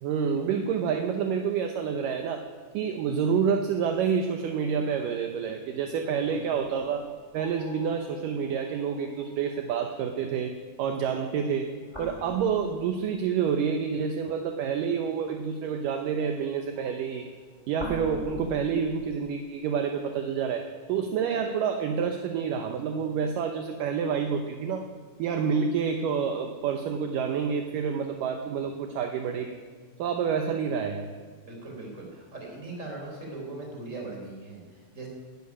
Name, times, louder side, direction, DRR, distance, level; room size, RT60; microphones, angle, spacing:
voice 1, 0.0-2.5 2.7-7.0 7.3-11.7 12.0-17.3 17.7-24.9 25.2-29.6 30.0-31.1, right 6 dB, 75° right, 5 dB, 2.1 m, -28 dB
sound 1, 7.1-9.9 11.7-13.4 16.7-19.2, equal, 10° left, 2.3 m, -44 dB
voice 2, 31.4-35.1, right 2 dB, 20° right, 0 dB, 3.7 m, -40 dB
13.0 x 10.0 x 9.8 m, 1.5 s
omnidirectional pair, 4.7 m